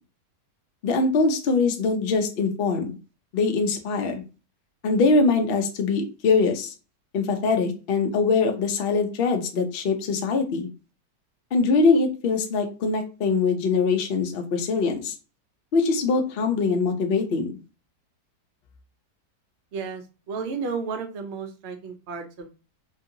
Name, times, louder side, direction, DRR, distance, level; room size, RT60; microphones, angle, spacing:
voice 1, 0.8-2.9 3.3-4.2 4.8-6.7 7.1-10.7 11.5-15.1 15.7-17.5, left 4 dB, 85° left, 5 dB, 0.5 m, -23 dB
voice 2, 19.7-22.5, right 5 dB, 60° right, 4 dB, 0.6 m, -33 dB
3.0 x 2.8 x 2.5 m, 0.32 s
omnidirectional pair, 1.8 m